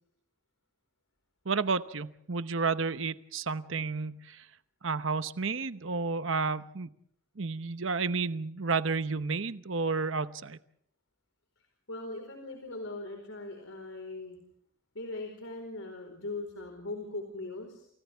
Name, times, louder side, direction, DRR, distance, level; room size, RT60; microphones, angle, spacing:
voice 1, 1.4-4.5 4.8-6.9 7.4-10.6, right 4 dB, 70° right, 11 dB, 0.9 m, -31 dB
voice 2, 11.9-14.4 14.9-17.9, left 2 dB, 85° left, 4 dB, 4.6 m, -40 dB
29.5 x 28.5 x 3.6 m, 0.69 s
head